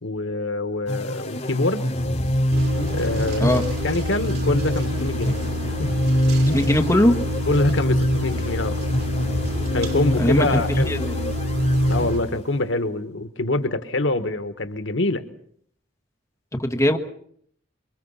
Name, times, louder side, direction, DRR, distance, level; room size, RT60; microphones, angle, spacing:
voice 1, 0.0-1.8 2.9-5.4 5.8-5.9 7.5-8.8 9.7-11.0 11.9-15.2, left 2 dB, 80° left, 10 dB, 1.5 m, -25 dB
sound 1, 0.9-12.6, equal, 40° left, 4.3 m, -25 dB
sound 2, 2.5-12.2, left 1 dB, 60° right, 3.5 m, -28 dB
voice 2, 6.5-7.2 10.2-10.6 10.9-11.3 16.6-17.0, left 1 dB, 15° left, 5 dB, 1.5 m, -20 dB
26.0 x 23.0 x 5.7 m, 0.64 s
head